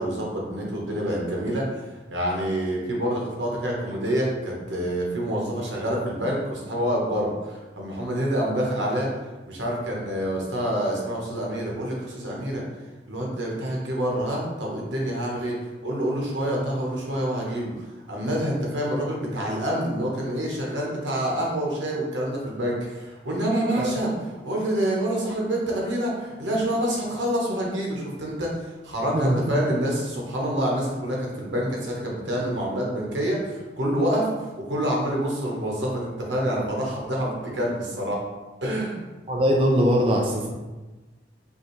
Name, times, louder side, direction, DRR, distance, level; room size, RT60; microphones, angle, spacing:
voice 1, 0.0-1.6 2.1-9.1 9.5-12.6 13.1-15.5 15.8-17.7 18.1-24.1 24.4-38.2 38.6-39.0, equal, 85° right, -2 dB, 1.2 m, -27 dB
voice 2, 29.1-29.5 39.3-40.5, equal, 30° right, -1 dB, 0.4 m, -21 dB
5.5 x 2.8 x 3.2 m, 1.2 s
head